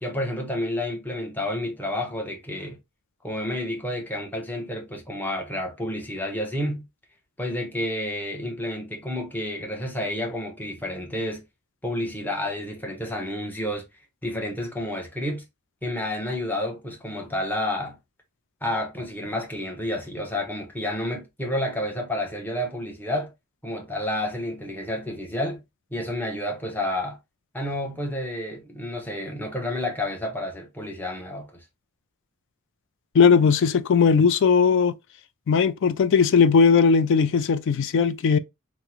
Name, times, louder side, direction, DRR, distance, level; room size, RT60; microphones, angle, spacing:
voice 1, 0.0-2.8 3.2-6.8 7.4-11.4 11.8-13.9 14.2-15.4 15.8-18.0 18.6-23.3 23.6-25.6 25.9-27.2 27.5-31.6, left 1 dB, 10° left, 0.8 m, -30 dB
voice 2, 33.1-34.9 35.5-38.4, left 5 dB, 55° left, 0.3 m, -18 dB
3.6 x 2.0 x 2.9 m
head